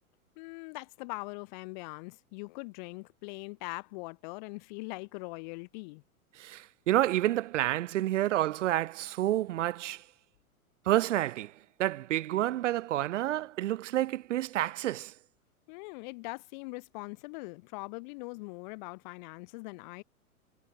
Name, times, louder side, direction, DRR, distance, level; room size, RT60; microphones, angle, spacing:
voice 1, 0.4-6.0 15.7-20.0, left 28 dB, 30° left, 0.7 m, -42 dB
voice 2, 6.4-10.0 10.9-15.1, right 14 dB, 55° right, 0.9 m, -29 dB
figure-of-eight pair, 110°, 44 cm